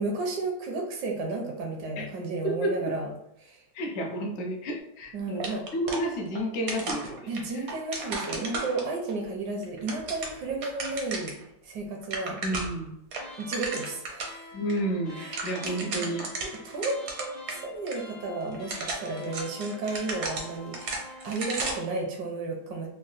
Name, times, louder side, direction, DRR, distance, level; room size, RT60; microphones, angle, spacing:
voice 1, 0.0-3.1 3.4-3.6 5.1-5.7 7.3-11.4 11.6-12.4 13.4-14.5 15.2-16.1 16.4-22.9, right 3 dB, 80° right, 1 dB, 1.2 m, -33 dB
voice 2, 2.4-2.9 3.7-7.6 12.4-12.9 14.5-16.3, right 1 dB, 60° left, 1 dB, 0.7 m, -31 dB
sound 1, 5.4-6.4 6.7-9.1 9.6-11.4 11.7-11.8 12.0-12.8 13.1-14.4 14.7-14.8 15.1-17.6 17.9-18.0 18.5-21.9, right 3 dB, 65° right, 0.7 m, -35 dB
sound 2, 13.1-21.4, left 2 dB, 90° left, 0.3 m, -47 dB
3.7 x 2.2 x 2.4 m, 0.76 s
omnidirectional pair, 1.7 m